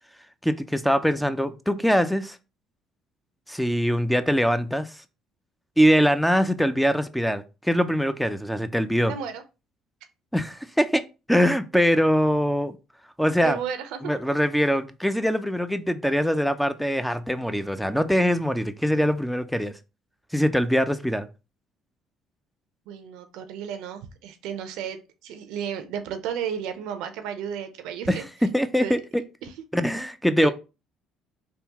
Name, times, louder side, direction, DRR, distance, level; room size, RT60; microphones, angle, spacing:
voice 1, 0.4-2.4 3.5-4.9 5.8-9.1 10.3-11.0 11.3-12.8 13.2-13.6 14.0-19.7 20.3-21.3 28.1-29.2 29.7-30.5, equal, ahead, 0.4 m, -23 dB
voice 2, 9.1-9.4 13.4-14.1 22.9-28.2 28.8-29.0 29.4-29.5 30.4-30.5, right 8 dB, 80° right, 0.5 m, -33 dB
3.5 x 2.3 x 2.8 m
supercardioid pair, 85°, 0 cm